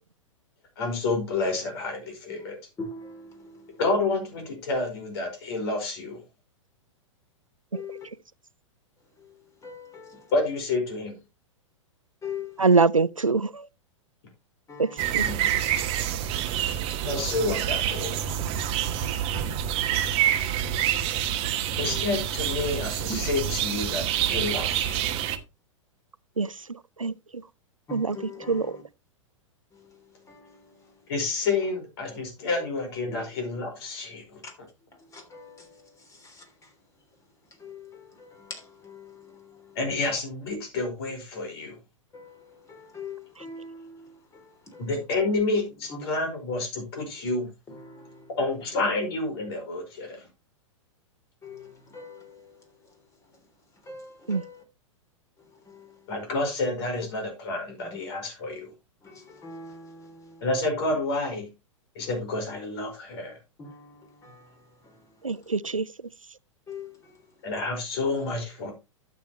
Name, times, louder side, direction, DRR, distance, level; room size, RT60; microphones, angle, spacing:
voice 1, 0.8-2.6 3.8-6.2 10.3-11.2 15.1-15.5 17.1-18.2 21.8-25.1 31.1-34.4 39.8-41.7 44.8-47.5 48.4-50.2 56.1-58.7 60.4-61.5 62.0-63.3 67.4-68.7, left 3 dB, 50° left, 5.1 m, -29 dB
voice 2, 2.8-3.8 7.7-8.1 9.6-10.3 12.2-12.8 14.7-15.1 16.4-17.3 21.8-22.0 23.0-23.2 27.9-28.8 30.3-30.7 32.6-32.7 33.1-33.2 34.4-34.5 35.1-36.5 37.6-39.6 42.1-44.5 44.7-44.9 45.9-46.0 47.7-48.3 51.4-52.6 53.9-54.6 55.7-55.9 57.9-58.0 59.0-60.4 63.6-64.6 66.7-67.1, left 3 dB, 20° left, 3.4 m, -42 dB
voice 3, 12.6-13.5 14.8-14.9 15.1-15.2 26.4-26.5 27.0-27.1 27.9-28.2 28.5-28.7 54.3-54.4 65.2-65.8, right 4 dB, 90° right, 0.5 m, -23 dB
sound 1, 15.0-25.4, right 10 dB, 35° right, 1.1 m, -27 dB
12.0 x 7.9 x 3.1 m
figure-of-eight pair, 105°, 17 cm